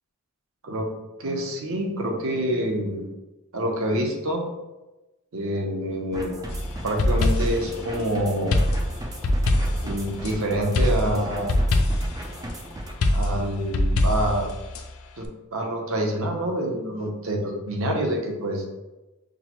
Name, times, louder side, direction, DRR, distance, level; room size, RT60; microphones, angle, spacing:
voice 1, 1.2-3.1 3.5-4.4 5.3-6.3 6.8-8.5 9.8-11.5 13.1-14.4 15.2-18.7, right 1 dB, 60° right, 2 dB, 0.7 m, -26 dB
sound 1, 6.1-13.0, right 1 dB, 15° right, 0.4 m, -37 dB
sound 2, 6.5-7.7 8.5-10.3 10.7-12.2 13.0-14.8, left 1 dB, 65° left, 0.4 m, -23 dB
6.1 x 2.0 x 2.9 m, 1.1 s
head